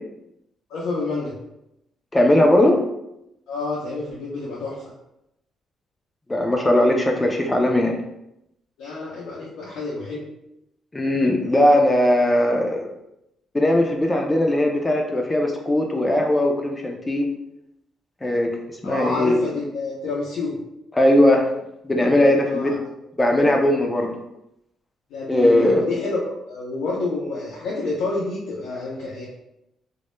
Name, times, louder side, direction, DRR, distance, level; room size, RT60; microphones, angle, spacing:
voice 1, 0.7-1.4 3.5-4.8 8.8-10.3 18.8-20.6 22.5-22.7 25.1-26.2 26.5-29.3, left 3 dB, 85° left, -6 dB, 0.5 m, -28 dB
voice 2, 2.1-2.8 6.3-8.0 10.9-12.9 13.5-17.3 18.2-19.4 21.0-21.5 21.8-22.7 23.2-24.1 25.3-25.8, left 1 dB, 15° left, 2 dB, 0.3 m, -19 dB
2.1 x 2.0 x 3.0 m, 0.85 s
cardioid pair, 90°, 0 cm